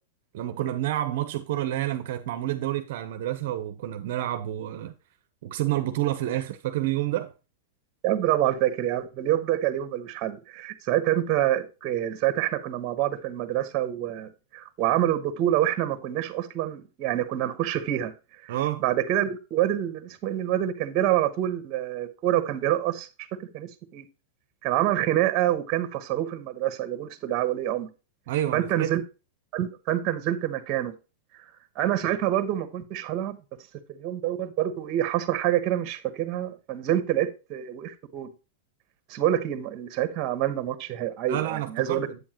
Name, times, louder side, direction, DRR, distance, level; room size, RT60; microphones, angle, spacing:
voice 1, 0.3-4.9 5.4-7.3 18.5-18.8 28.3-29.0 41.3-42.2, right 13 dB, 60° right, 0.7 m, -29 dB
voice 2, 8.0-18.1 18.4-18.5 18.8-24.1 24.6-27.9 28.5-29.0 29.5-30.9 31.3-31.5 31.8-33.4 33.9-38.3 39.1-42.1, right 12 dB, 35° right, 1.1 m, -27 dB
8.2 x 7.1 x 2.9 m
supercardioid pair, 150°, 0 cm